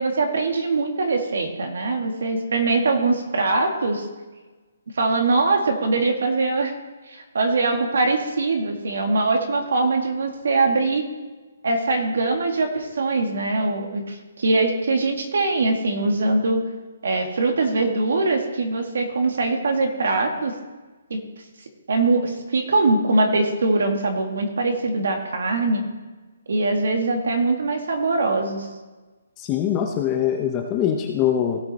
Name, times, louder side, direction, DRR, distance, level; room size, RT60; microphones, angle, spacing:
voice 1, 0.0-4.0 5.0-6.7 7.1-11.1 11.6-16.6 17.0-20.5 21.1-21.2 21.9-25.8 26.5-28.7, right 3 dB, 65° right, 4 dB, 1.9 m, -22 dB
voice 2, 29.4-31.6, left 9 dB, 15° left, 3 dB, 0.5 m, -23 dB
17.0 x 6.3 x 4.2 m, 1.2 s
hypercardioid pair, 175°, 0 cm